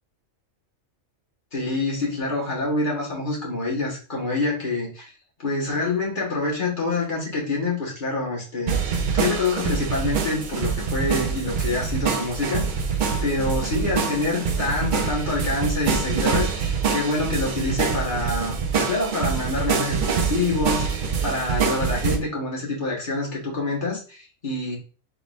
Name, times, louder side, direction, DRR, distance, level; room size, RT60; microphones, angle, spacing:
voice 1, 1.5-5.1 5.4-8.8 9.1-24.8, left 2 dB, 40° left, -4 dB, 1.7 m, -26 dB
sound 1, 8.7-22.2, right 6 dB, 50° right, 0.6 m, -25 dB
4.0 x 3.7 x 2.5 m, 0.37 s
omnidirectional pair, 1.3 m